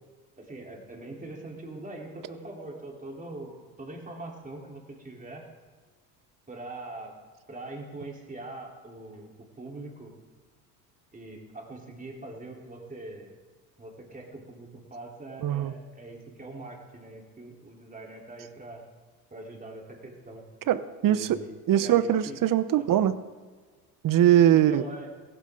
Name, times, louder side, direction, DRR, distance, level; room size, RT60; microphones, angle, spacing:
voice 1, 0.4-5.5 6.5-7.1 7.5-9.3 9.6-10.1 11.1-13.3 13.8-18.8 19.3-20.5 21.1-21.5 21.8-22.4 22.8-23.1 24.5-25.1, right 2 dB, 15° right, -1 dB, 4.1 m, -42 dB
voice 2, 15.4-15.7 20.7-21.3 21.7-23.1 24.0-24.8, right 11 dB, 45° right, 14 dB, 1.0 m, -21 dB
16.5 x 15.5 x 4.0 m, 1.5 s
hypercardioid pair, 80°, 47 cm